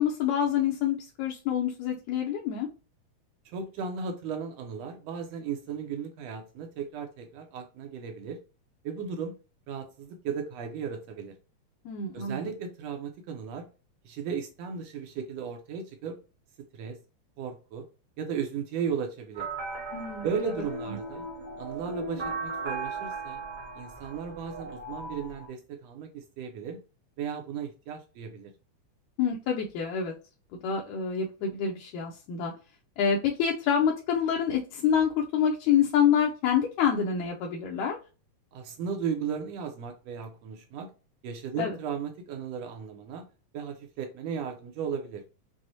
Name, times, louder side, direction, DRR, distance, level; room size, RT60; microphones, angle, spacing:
voice 1, 0.0-2.7 11.9-12.4 19.9-21.0 29.2-30.1 30.6-32.5 33.0-38.0 41.6-41.8, left 8 dB, 80° left, 1.9 m, -27 dB
voice 2, 3.4-8.4 8.8-9.4 9.7-11.3 12.1-13.7 14.0-16.2 16.7-17.0 17.4-17.9 18.2-19.5 20.2-21.2 21.6-23.4 23.8-26.8 27.2-28.5 38.5-40.9 41.2-43.2 43.5-45.2, right 6 dB, 75° right, 1.5 m, -35 dB
sound 1, 19.3-25.5, right 3 dB, 45° right, 1.2 m, -37 dB
6.1 x 2.0 x 2.6 m
omnidirectional pair, 3.4 m